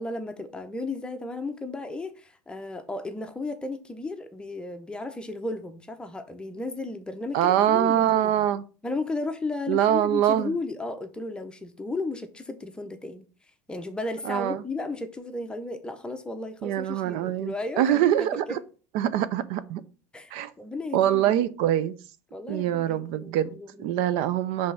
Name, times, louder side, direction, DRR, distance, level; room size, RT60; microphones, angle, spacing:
voice 1, 0.0-8.3 8.8-13.2 13.7-18.6 20.1-21.5 22.3-24.0, left 2 dB, 10° left, 0.7 m, -34 dB
voice 2, 7.3-8.6 9.7-10.5 14.2-14.6 16.6-18.6 18.9-19.8 20.3-20.5 20.9-21.9 22.5-24.7, right 11 dB, 65° right, 0.5 m, -24 dB
5.3 x 3.4 x 5.6 m
supercardioid pair, 130°, 10 cm